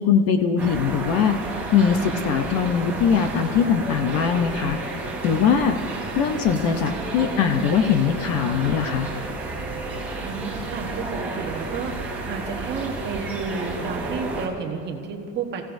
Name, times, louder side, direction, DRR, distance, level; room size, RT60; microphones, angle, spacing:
voice 1, 0.0-4.8 5.2-5.8 6.1-9.1, left 7 dB, 35° left, 7 dB, 0.7 m, -21 dB
sound 1, 0.6-14.5, right 2 dB, 5° right, 2.7 m, -31 dB
voice 2, 10.2-15.6, right 5 dB, 25° right, 3 dB, 1.2 m, -31 dB
29.5 x 16.0 x 2.6 m, 2.6 s
cardioid pair, 180°, 41 cm